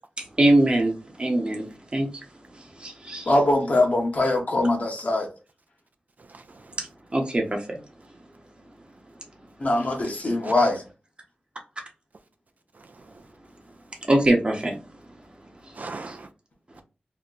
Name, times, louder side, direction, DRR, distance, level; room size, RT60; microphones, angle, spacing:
voice 1, 0.4-2.1 2.8-3.3 6.8-6.9 7.1-7.6 14.1-14.8 16.1-16.2, right 1 dB, 35° right, 0.9 m, -22 dB
voice 2, 3.3-5.3 9.6-10.8, left 2 dB, 55° left, 0.9 m, -22 dB
voice 3, 6.2-6.8 9.9-10.0 10.4-10.7 12.7-13.2 15.7-16.3, right 3 dB, 60° right, 0.4 m, -41 dB
2.8 x 2.1 x 3.7 m
wide cardioid pair, 85°, 3 cm